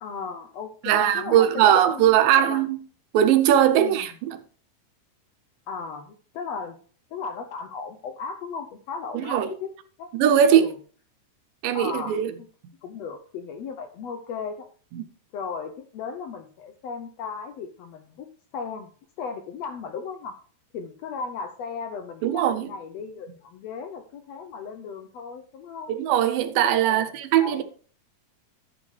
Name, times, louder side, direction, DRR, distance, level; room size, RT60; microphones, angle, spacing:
voice 1, 0.0-2.0 2.3-2.6 3.8-4.1 5.7-6.8 7.1-9.7 10.0-10.1 10.5-10.8 11.7-12.2 12.8-14.6 15.3-18.3 18.5-18.9 19.2-20.4 20.7-25.9 26.9-27.1 27.4-27.6, left 5 dB, 80° left, 1.5 m, -36 dB
voice 2, 0.8-2.8 3.1-4.4 9.1-9.5 10.1-10.7 11.6-12.3 14.9-15.0 22.2-22.7 25.9-27.6, right 10 dB, 90° right, 2.4 m, -20 dB
11.0 x 8.2 x 3.2 m
omnidirectional pair, 3.9 m